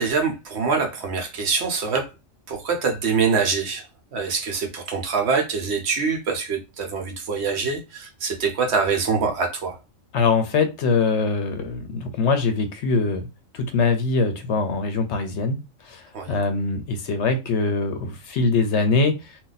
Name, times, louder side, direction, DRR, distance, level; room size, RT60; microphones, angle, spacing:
voice 1, 0.0-2.1 2.5-3.8 4.1-9.8 16.1-16.3, right 5 dB, 60° right, 0.9 m, -24 dB
voice 2, 10.1-13.3 13.5-15.6 15.8-19.4, left 4 dB, 65° left, 0.8 m, -23 dB
2.6 x 2.2 x 3.8 m
omnidirectional pair, 1.3 m